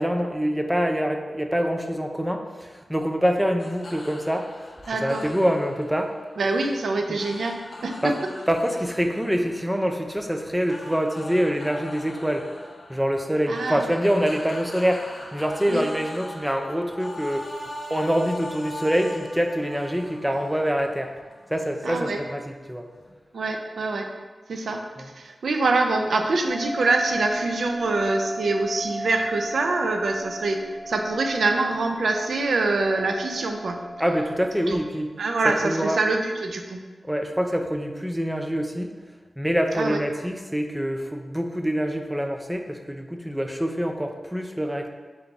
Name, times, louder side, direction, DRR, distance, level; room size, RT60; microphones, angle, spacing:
voice 1, 0.0-4.7 5.0-6.1 7.1-7.2 8.0-8.2 8.5-12.5 12.9-21.1 21.5-22.9 25.0-25.1 34.0-35.1 35.4-36.0 37.0-38.9 39.4-44.9, equal, 5° right, 4 dB, 0.4 m, -25 dB
sound 1, 3.6-23.1, left 1 dB, 50° left, 0.6 m, -41 dB
voice 2, 4.9-5.3 6.4-8.2 13.5-13.8 15.7-15.8 21.8-22.2 23.3-24.1 24.5-30.6 30.9-33.8 34.7-34.8 35.2-36.8 39.7-40.0, right 3 dB, 85° right, 4 dB, 0.4 m, -25 dB
sound 2, 26.5-34.5, equal, 40° right, 1.4 m, -35 dB
3.8 x 3.6 x 2.9 m, 1.4 s
wide cardioid pair, 85°, 0 cm